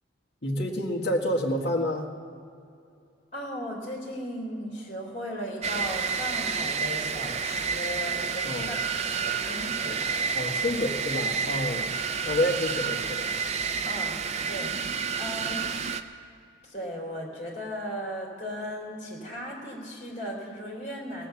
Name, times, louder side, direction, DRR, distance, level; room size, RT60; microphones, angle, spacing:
voice 1, 0.4-2.1 8.4-8.8 10.3-11.9 12.2-13.3, left 1 dB, 55° left, -1 dB, 1.7 m, -28 dB
voice 2, 3.3-10.3 13.9-14.2 14.4-15.7 16.6-21.3, equal, 35° left, -3 dB, 3.7 m, -37 dB
sound 1, 5.6-16.0, right 5 dB, 35° right, 0.5 m, -30 dB
17.5 x 8.3 x 7.1 m, 2.5 s
head